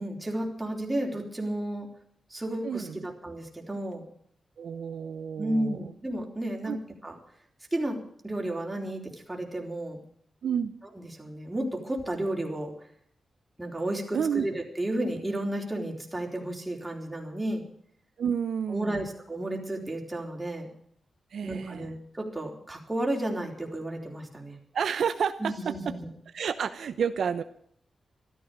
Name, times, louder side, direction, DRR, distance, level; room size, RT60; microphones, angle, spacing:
voice 1, 0.0-1.9 2.3-4.0 5.4-6.7 7.0-7.2 7.7-9.0 9.3-10.0 11.1-12.7 13.6-17.6 18.7-20.7 21.4-24.6 25.4-26.1, right 1 dB, 10° right, 0 dB, 3.9 m, -32 dB
voice 2, 2.6-3.0 4.6-5.9 6.6-6.8 10.4-10.7 14.1-14.5 18.2-19.1 21.3-21.9 24.7-25.9 26.3-27.4, right 7 dB, 75° right, 9 dB, 0.8 m, -30 dB
14.0 x 13.0 x 6.7 m, 0.66 s
wide cardioid pair, 120°, 0 cm